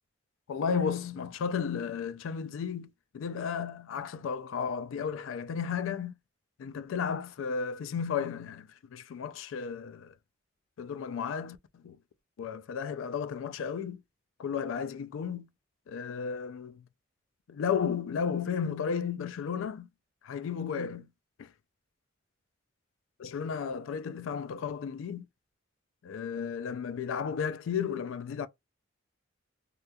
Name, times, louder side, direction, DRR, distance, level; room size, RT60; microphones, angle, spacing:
voice 1, 0.5-6.2 6.6-10.1 10.8-12.0 12.4-14.0 14.4-15.5 15.9-16.8 17.5-19.9 20.2-21.1 21.4-21.5 23.2-25.3 26.0-28.5, left 6 dB, 75° left, 0.3 m, -33 dB
2.9 x 2.2 x 2.2 m
head